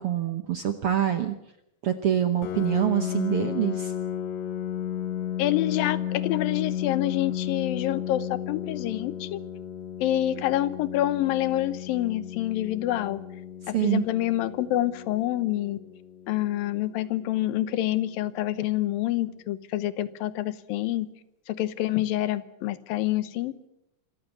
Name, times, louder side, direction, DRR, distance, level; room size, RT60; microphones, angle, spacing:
voice 1, 0.0-1.3 1.8-3.9 13.7-14.0, right 11 dB, 70° right, 8 dB, 1.4 m, -25 dB
Piano, 2.4-17.8, left 10 dB, 65° left, 2.0 m, -34 dB
voice 2, 5.4-9.4 10.0-13.2 13.7-15.8 16.3-21.1 21.5-23.5, left 14 dB, 90° left, 15 dB, 2.8 m, -27 dB
25.5 x 14.5 x 9.4 m, 0.83 s
omnidirectional pair, 4.0 m